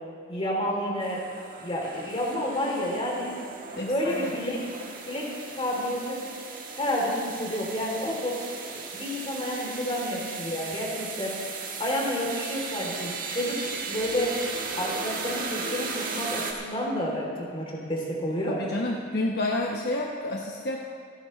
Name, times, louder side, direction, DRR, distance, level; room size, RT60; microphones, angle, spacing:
voice 1, 0.3-1.2 1.6-3.3 3.8-4.6 5.0-5.3 5.5-6.2 6.7-8.4 8.9-11.4 11.8-14.3 14.8-18.6, equal, 30° left, -3 dB, 3.1 m, -30 dB
sound 1, 1.0-16.5, right 4 dB, 45° right, 1.6 m, -37 dB
voice 2, 3.7-4.3 18.5-20.8, left 2 dB, 55° left, -1 dB, 1.0 m, -30 dB
28.0 x 10.5 x 3.2 m, 2.3 s
head